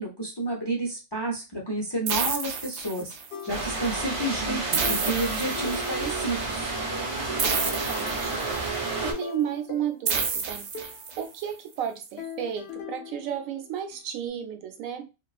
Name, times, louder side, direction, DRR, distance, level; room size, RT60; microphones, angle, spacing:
voice 1, 0.0-3.1 3.4-6.7, right 1 dB, 35° left, 0.4 m, -30 dB
sound 1, 2.1-3.4 4.7-6.1 7.4-8.8 10.1-11.4, right 5 dB, 65° right, 0.8 m, -30 dB
sound 2, 3.3-4.1 4.8-6.5 6.9-8.1 8.6-11.1 12.2-14.0, left 6 dB, 60° left, 0.8 m, -41 dB
sound 3, 3.5-9.1, right 3 dB, 45° right, 0.4 m, -30 dB
voice 2, 7.4-8.4 8.7-10.6 11.2-15.1, right 9 dB, 90° right, 1.0 m, -33 dB
2.5 x 2.3 x 2.3 m
omnidirectional pair, 1.4 m